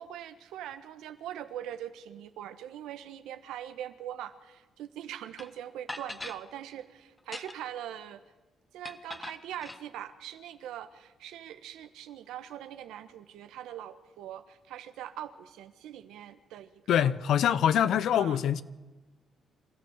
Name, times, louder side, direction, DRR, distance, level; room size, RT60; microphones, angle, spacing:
voice 1, 0.0-8.2 8.7-17.1 18.2-18.4, right 11 dB, 90° right, 1.3 m, -42 dB
sound 1, 5.4-5.5 5.9-6.4 7.2-7.8 8.8-9.8, left 2 dB, 15° left, 1.3 m, -41 dB
voice 2, 16.9-18.6, left 9 dB, 75° left, 0.8 m, -24 dB
25.0 x 14.0 x 8.2 m
cardioid pair, 90°, 0 cm